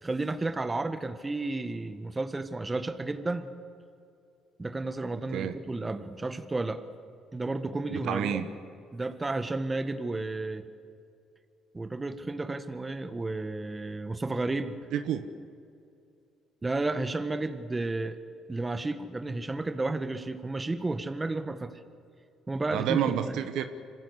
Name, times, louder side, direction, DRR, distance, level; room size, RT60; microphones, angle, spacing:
voice 1, 0.0-3.5 4.6-6.8 7.3-8.4 8.9-10.6 11.7-14.7 16.6-18.2 18.5-21.8 22.5-23.4, right 2 dB, 20° right, 9 dB, 1.5 m, -32 dB
voice 2, 7.9-8.5 14.9-15.2 22.7-23.6, right 9 dB, 75° right, 9 dB, 1.2 m, -29 dB
25.5 x 16.0 x 8.3 m, 2.5 s
supercardioid pair, 70°, 0 cm